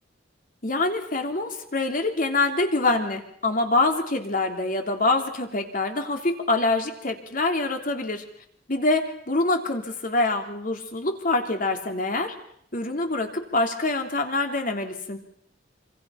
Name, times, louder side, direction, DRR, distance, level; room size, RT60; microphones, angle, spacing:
voice 1, 0.6-8.2 8.7-12.3 12.7-15.2, left 2 dB, 45° left, 5 dB, 3.1 m, -25 dB
26.5 x 26.0 x 5.7 m, 0.68 s
head